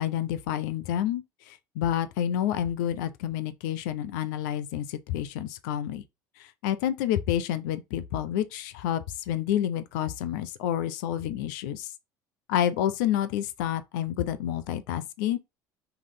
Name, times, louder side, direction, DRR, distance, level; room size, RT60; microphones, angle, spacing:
voice 1, 0.0-6.0 6.4-11.9 12.5-15.4, left 11 dB, 80° left, 0.7 m, -29 dB
5.8 x 3.2 x 5.6 m
supercardioid pair, 80°, 10 cm